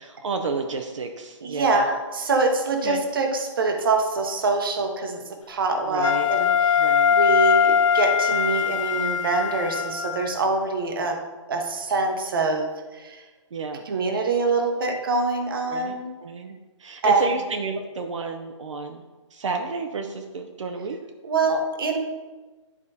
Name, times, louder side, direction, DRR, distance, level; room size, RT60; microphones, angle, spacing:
voice 1, 0.0-1.9 2.8-3.0 5.8-6.3 6.8-7.2 13.5-13.8 15.7-19.0 19.3-21.0, right 4 dB, 70° right, 3 dB, 0.7 m, -31 dB
voice 2, 1.4-5.2 5.5-6.8 7.1-11.2 11.5-13.2 13.9-16.1 17.0-17.3 21.2-22.0, right 3 dB, 45° right, 3 dB, 1.0 m, -24 dB
Wind instrument woodwind instrument, 6.0-10.3, left 7 dB, 80° left, 0.7 m, -21 dB
11.0 x 4.8 x 2.7 m, 1.3 s
hypercardioid pair, 180°, 16 cm